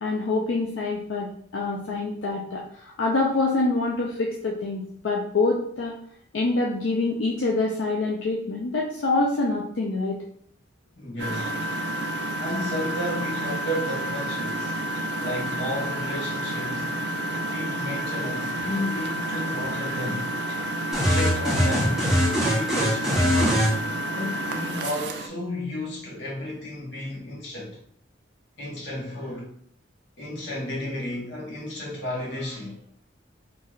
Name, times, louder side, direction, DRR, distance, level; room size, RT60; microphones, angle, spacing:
voice 1, 0.0-1.3 1.5-6.0 6.3-10.2, left 3 dB, 80° left, -1 dB, 0.4 m, -26 dB
voice 2, 11.0-11.6 12.4-14.8 15.2-16.9 17.5-20.4 21.1-22.0 22.5-23.7 24.1-27.8 28.6-29.5 30.2-32.8, left 1 dB, 65° left, -4 dB, 1.0 m, -32 dB
Engine, 11.2-25.3, right 1 dB, 60° right, 0.3 m, -30 dB
sound 1, 20.9-23.7, equal, 5° right, 0.5 m, -22 dB
3.0 x 2.5 x 2.3 m, 0.62 s
head